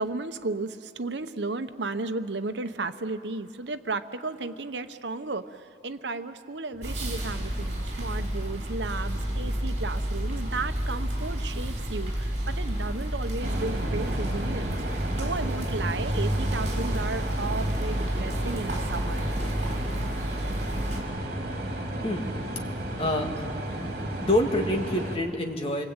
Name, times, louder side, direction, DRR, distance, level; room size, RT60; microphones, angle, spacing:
voice 1, 0.0-5.4 5.8-14.7 15.1-19.2, right 3 dB, 80° right, 10 dB, 1.0 m, -34 dB
sound 1, 6.7-13.8, left 1 dB, 70° left, 2.9 m, -48 dB
sound 2, 6.8-21.0, equal, 40° right, 6.0 m, -30 dB
sound 3, 13.4-25.2, right 1 dB, 60° right, 3.8 m, -33 dB
voice 2, 23.0-23.5 23.8-24.0 24.2-25.8, left 1 dB, 30° left, 2 dB, 2.3 m, -27 dB
28.0 x 24.0 x 8.9 m, 2.4 s
head